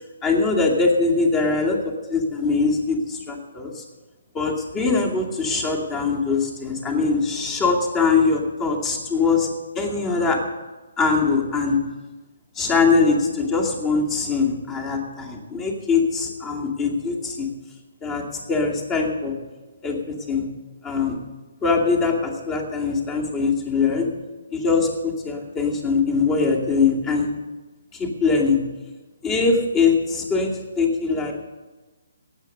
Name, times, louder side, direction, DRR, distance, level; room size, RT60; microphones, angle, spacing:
voice 1, 0.2-1.8 2.1-3.8 4.3-9.5 9.7-10.4 11.0-11.8 12.6-17.5 18.0-19.4 19.8-20.5 20.8-21.2 21.6-24.1 24.5-27.3 27.9-28.6 29.2-31.3, left 4 dB, 20° left, 0 dB, 2.4 m, -22 dB
17.5 x 8.1 x 6.6 m, 1.2 s
figure-of-eight pair, 140°, 0 cm